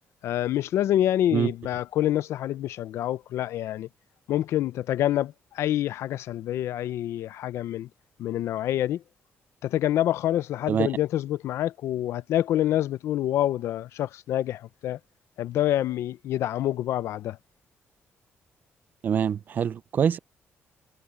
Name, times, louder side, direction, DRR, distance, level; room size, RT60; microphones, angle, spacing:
voice 1, 0.2-3.9 4.3-7.9 8.2-9.0 9.6-15.0 15.4-17.4, left 12 dB, 75° left, 0.6 m, -27 dB
voice 2, 19.0-20.2, right 8 dB, 40° right, 0.5 m, -24 dB
cardioid pair, 165°, 5 cm